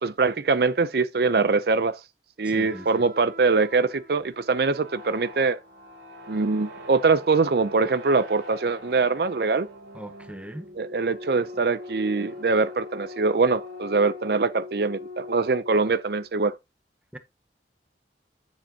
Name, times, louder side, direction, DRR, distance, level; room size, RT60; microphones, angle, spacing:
voice 1, 0.0-2.0 2.4-5.6 6.3-9.7 10.8-16.5, right 4 dB, 60° right, 0.5 m, -23 dB
voice 2, 2.4-3.1 9.9-10.7 17.1-17.2, right 1 dB, 5° right, 0.8 m, -39 dB
sound 1, 2.6-16.3, left 2 dB, 85° right, 3.6 m, -42 dB
10.5 x 7.1 x 2.8 m
head